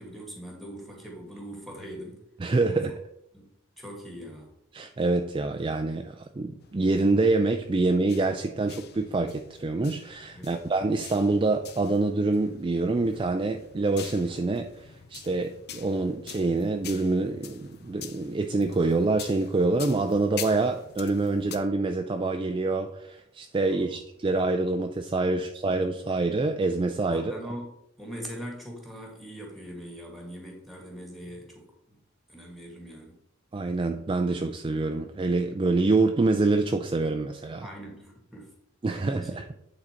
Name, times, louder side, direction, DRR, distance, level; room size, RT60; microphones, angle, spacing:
voice 1, 0.0-2.2 2.7-2.8 3.3-4.5 10.3-10.6 23.6-24.0 25.3-25.4 27.1-32.0 32.3-33.1 37.6-38.5 39.0-39.4, equal, ahead, 1.9 m, -42 dB
voice 2, 2.4-3.0 4.7-27.4 33.5-37.7 38.8-39.4, right 3 dB, 25° right, 0.4 m, -26 dB
sound 1, 6.6-21.6, left 8 dB, 50° left, 0.6 m, -46 dB
8.6 x 4.0 x 4.4 m
head